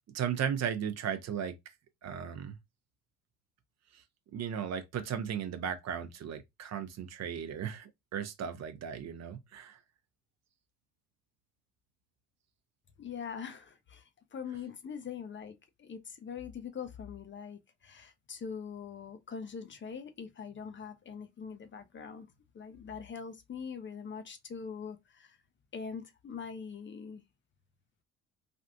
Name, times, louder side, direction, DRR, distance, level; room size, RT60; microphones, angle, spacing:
voice 1, 0.1-1.6 2.0-2.6 3.9-4.0 4.3-9.8, right 8 dB, 45° right, 0.6 m, -36 dB
voice 2, 13.0-22.3 22.5-25.4 25.7-27.2, left 6 dB, 30° left, 0.6 m, -43 dB
3.4 x 2.4 x 2.5 m
hypercardioid pair, 60°, 36 cm